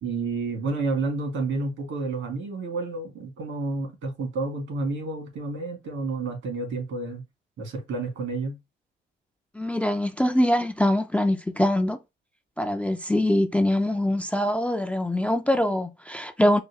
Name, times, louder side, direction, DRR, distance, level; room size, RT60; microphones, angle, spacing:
voice 1, 0.0-7.2 7.6-8.6, right 3 dB, 80° right, 2.3 m, -30 dB
voice 2, 9.5-12.0 12.6-16.6, left 1 dB, 5° left, 0.4 m, -23 dB
4.8 x 2.2 x 3.1 m
cardioid pair, 90°, 20 cm